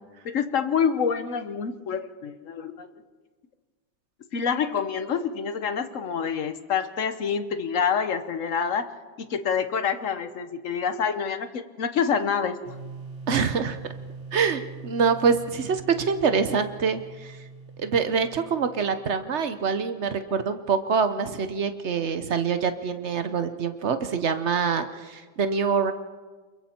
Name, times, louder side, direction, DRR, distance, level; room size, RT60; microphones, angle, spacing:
voice 1, 0.2-2.9 4.3-8.9 9.2-12.6, left 6 dB, 50° left, 10 dB, 1.0 m, -27 dB
sound 1, 12.6-19.5, right 4 dB, 35° right, 3.3 m, -42 dB
voice 2, 13.3-13.8 14.3-17.4 17.8-25.9, right 6 dB, 50° right, 9 dB, 0.8 m, -25 dB
28.0 x 22.5 x 4.4 m, 1.4 s
omnidirectional pair, 2.1 m